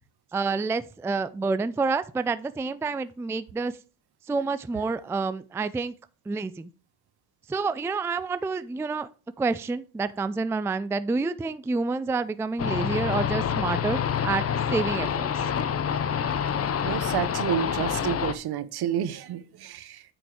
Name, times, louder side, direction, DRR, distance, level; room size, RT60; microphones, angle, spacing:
voice 1, 0.3-3.7 4.3-5.9 6.3-6.7 7.5-9.1 9.4-14.4 14.7-15.4, right 4 dB, 5° right, 0.4 m, -28 dB
sound 1, 12.6-18.3, left 8 dB, 35° left, 0.8 m, -27 dB
voice 2, 16.8-20.0, right 9 dB, 60° right, 0.9 m, -30 dB
8.9 x 4.5 x 4.8 m
supercardioid pair, 75°, 43 cm